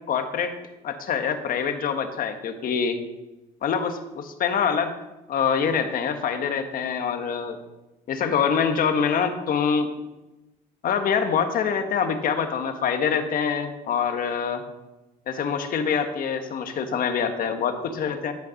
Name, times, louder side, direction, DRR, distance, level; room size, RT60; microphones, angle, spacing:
voice 1, 0.1-0.6 0.8-3.0 3.6-5.0 5.3-7.6 8.1-9.9 10.8-14.6 15.3-18.3, left 6 dB, 55° left, 7 dB, 1.5 m, -25 dB
12.0 x 5.8 x 6.5 m, 1.0 s
cardioid pair, 110°, 17 cm